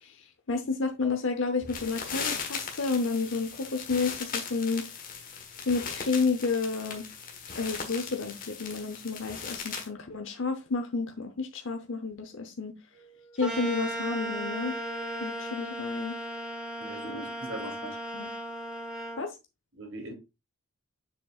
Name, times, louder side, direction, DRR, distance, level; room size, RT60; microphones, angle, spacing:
voice 1, 0.0-4.9 5.7-7.1 7.5-12.7 13.4-14.7 15.2-16.2 17.0-17.2 18.1-18.3 19.2-19.3, left 4 dB, 60° left, 0.8 m, -31 dB
sound 1, 1.6-9.9, left 6 dB, 40° left, 1.4 m, -38 dB
Wind instrument woodwind instrument, 12.9-16.8, right 10 dB, 85° right, 3.8 m, -50 dB
sound 2, 13.4-19.2, equal, 5° right, 1.2 m, -36 dB
voice 2, 16.8-17.9 19.7-20.1, right 1 dB, 65° right, 2.9 m, -40 dB
7.2 x 5.7 x 2.4 m
head